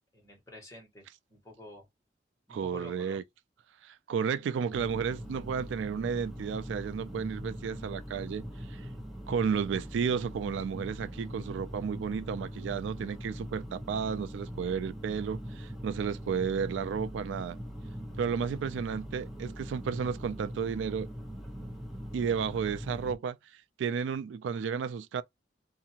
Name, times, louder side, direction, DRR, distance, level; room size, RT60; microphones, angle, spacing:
voice 1, 0.1-1.9 2.5-3.2, left 1 dB, 15° left, 1.4 m, -50 dB
voice 2, 2.5-3.2 3.8-8.9 9.3-17.6 18.2-21.1 22.1-23.4 23.8-25.2, right 6 dB, 90° right, 0.3 m, -32 dB
sound 1, 4.7-23.2, equal, ahead, 0.7 m, -42 dB
2.7 x 2.5 x 2.8 m
head